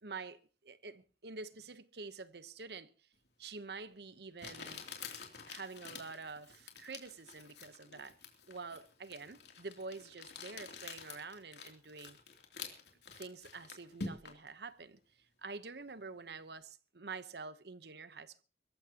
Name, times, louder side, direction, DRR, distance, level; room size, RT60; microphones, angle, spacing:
voice 1, 0.0-2.9 3.4-4.8 5.5-8.2 8.5-12.2 13.1-18.4, right 4 dB, 70° right, 1.0 m, -47 dB
Crumpling crinkling, 3.5-3.6 4.4-14.5, left 4 dB, 75° left, 3.1 m, -48 dB
24.0 x 14.5 x 3.0 m
head